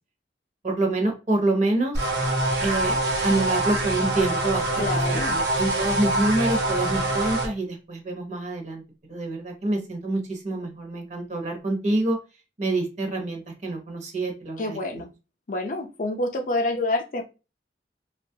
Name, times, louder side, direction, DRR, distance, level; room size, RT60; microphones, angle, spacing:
voice 1, 0.6-2.0 2.6-4.6 5.1-8.8 9.1-12.2 12.6-15.0, right 2 dB, 40° right, 2 dB, 0.7 m, -26 dB
sound 1, 1.9-7.5, right 1 dB, 75° right, 0.9 m, -25 dB
voice 2, 4.7-5.4 14.6-15.1 15.5-17.2, left 2 dB, 50° left, 5 dB, 0.5 m, -27 dB
2.9 x 2.3 x 2.7 m, 0.30 s
head